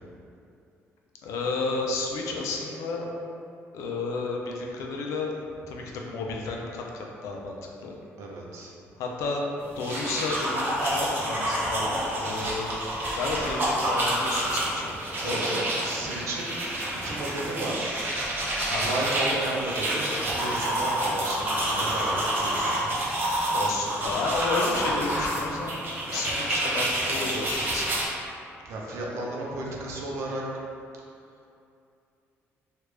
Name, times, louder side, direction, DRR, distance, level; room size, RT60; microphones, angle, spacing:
voice 1, 1.2-3.1 3.7-5.3 5.7-7.6 7.8-8.0 9.0-9.4 9.7-12.7 13.1-15.6 16.9-17.3 18.7-18.9 23.5-25.8 26.1-28.0, left 3 dB, 85° left, 0 dB, 0.4 m, -32 dB
voice 2, 8.2-8.7 12.2-12.4 15.2-16.5 17.0-17.9 18.4-18.5 18.8-23.1 28.6-30.4, right 2 dB, 70° right, -3 dB, 0.6 m, -33 dB
sound 1, 9.7-28.1, right 1 dB, 40° right, 0.8 m, -28 dB
3.2 x 2.4 x 3.2 m, 2.6 s
cardioid pair, 125°, 5 cm